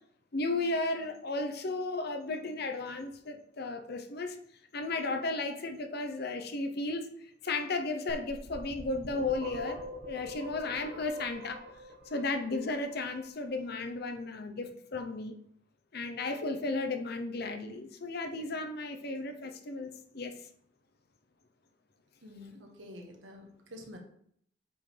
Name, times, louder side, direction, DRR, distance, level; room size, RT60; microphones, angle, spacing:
voice 1, 0.3-4.4 4.7-7.1 7.4-11.6 12.1-15.3 15.9-20.3, left 3 dB, 55° left, 7 dB, 0.8 m, -34 dB
sound 1, 8.1-12.9, left 1 dB, 55° right, 1.3 m, -43 dB
voice 2, 22.2-24.0, left 1 dB, 75° right, 2 dB, 1.6 m, -48 dB
8.0 x 5.6 x 3.4 m, 0.66 s
head